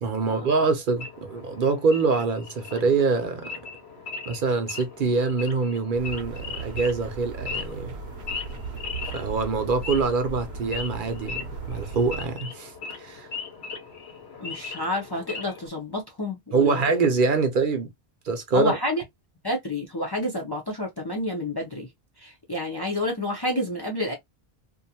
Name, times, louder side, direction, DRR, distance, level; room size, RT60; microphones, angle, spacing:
voice 1, 0.0-3.5 4.3-7.9 9.1-13.3 16.5-17.9 18.2-18.7, right 4 dB, 60° right, 0.7 m, -24 dB
Wild animals / Idling, 1.0-15.7, left 5 dB, 90° left, 1.0 m, -39 dB
sound 1, 5.9-12.3, right 4 dB, 85° right, 0.9 m, -37 dB
voice 2, 14.4-16.8 18.5-19.0 19.4-21.9 22.2-24.1, left 1 dB, 30° left, 0.5 m, -29 dB
2.5 x 2.3 x 2.7 m
omnidirectional pair, 1.0 m